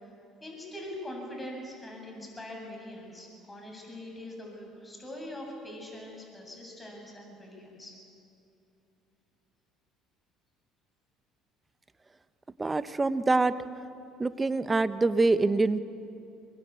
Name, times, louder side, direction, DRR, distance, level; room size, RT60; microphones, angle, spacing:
voice 1, 0.4-8.0, left 1 dB, 20° left, 0 dB, 7.7 m, -42 dB
voice 2, 12.6-13.5 14.2-15.8, right 3 dB, 20° right, 13 dB, 1.1 m, -25 dB
24.0 x 20.5 x 8.4 m, 2.6 s
supercardioid pair, 75°, 0 cm